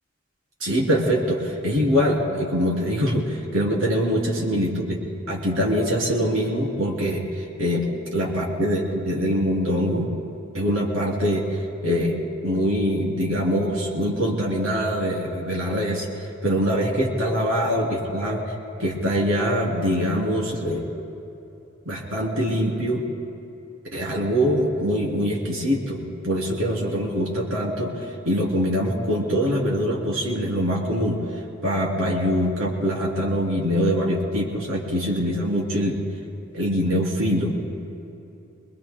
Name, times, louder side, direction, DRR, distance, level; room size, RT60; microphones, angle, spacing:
voice 1, 0.6-5.0 5.3-7.9 8.1-10.1 10.5-11.6 11.8-18.5 18.8-20.9 21.8-23.0 23.8-31.2 31.6-36.0 36.5-37.6, equal, 85° right, -2 dB, 3.0 m, -23 dB
25.5 x 21.0 x 2.2 m, 2.8 s
head